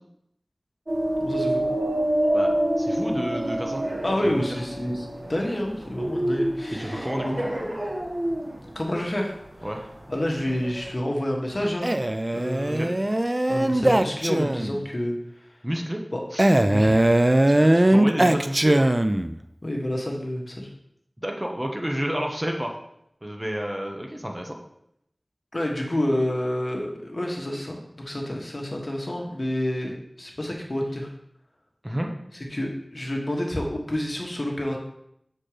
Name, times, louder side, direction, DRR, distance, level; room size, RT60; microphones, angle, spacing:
sound 1, 0.9-10.9, right 1 dB, 50° right, 1.6 m, -27 dB
voice 1, 1.2-1.6 4.0-7.3 8.7-9.4 10.1-11.9 12.3-13.0 13.5-15.5 16.1-16.2 16.7-17.1 19.6-20.7 25.5-31.1 32.5-34.8, left 1 dB, 50° left, 0 dB, 1.4 m, -29 dB
voice 2, 2.3-3.8 4.2-4.4 6.7-7.4 9.6-9.8 12.7-12.9 15.6-16.0 16.3-16.5 17.5-18.9 21.2-22.7 23.2-24.6 31.8-32.1, equal, 15° right, 1 dB, 1.1 m, -30 dB
Male speech man speaking, 11.8-14.8 16.4-19.4, right 1 dB, 30° right, 0.4 m, -20 dB
7.4 x 4.4 x 4.9 m, 0.76 s
wide cardioid pair, 55°, 0 cm